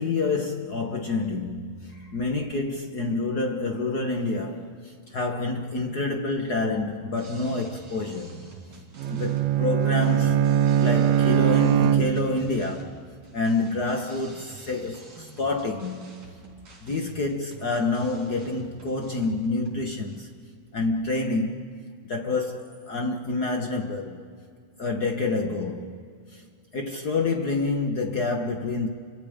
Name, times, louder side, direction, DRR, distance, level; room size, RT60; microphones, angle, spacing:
voice 1, 0.0-8.4 9.1-10.4 10.8-13.0 13.3-16.1 16.8-20.3 20.7-21.7 22.0-24.3 24.8-25.9 26.3-26.4 26.7-28.9, left 3 dB, 55° left, 1.1 m, -28 dB
sound 1, 7.2-20.2, right 3 dB, 55° right, 5.4 m, -48 dB
Bowed string instrument, 9.0-12.6, right 10 dB, 70° right, 2.1 m, -22 dB
29.5 x 25.5 x 5.1 m
omnidirectional pair, 3.7 m